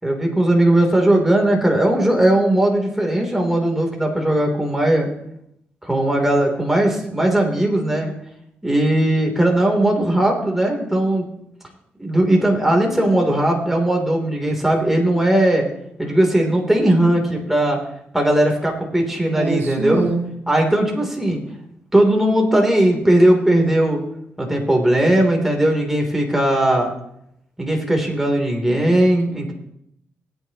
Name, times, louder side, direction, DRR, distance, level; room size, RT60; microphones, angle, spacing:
voice 1, 0.0-5.1 5.8-8.1 8.6-11.2 12.0-15.7 16.0-17.8 18.1-20.0 20.5-21.4 21.9-24.0 24.4-26.9 27.6-29.5, right 1 dB, 5° right, 1 dB, 3.2 m, -18 dB
voice 2, 19.3-20.3, right 4 dB, 65° right, 1 dB, 2.1 m, -24 dB
20.0 x 9.2 x 3.0 m, 0.76 s
cardioid pair, 90°, 4 cm